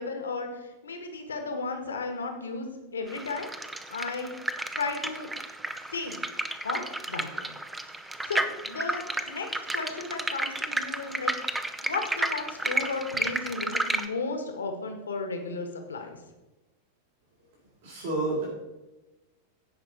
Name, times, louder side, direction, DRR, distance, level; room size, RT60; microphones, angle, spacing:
voice 1, 0.0-2.7 2.9-3.5 3.9-4.3 4.7-5.3 5.9-6.2 6.6-7.4 8.3-9.5 9.7-11.3 11.8-16.2, left 4 dB, 70° left, 5 dB, 1.6 m, -34 dB
sound 1, 3.1-14.1, right 2 dB, 10° right, 0.7 m, -32 dB
voice 2, 17.8-18.5, right 2 dB, 55° right, -4 dB, 4.1 m, -29 dB
16.0 x 5.5 x 4.2 m, 1.1 s
figure-of-eight pair, 90°, 0 cm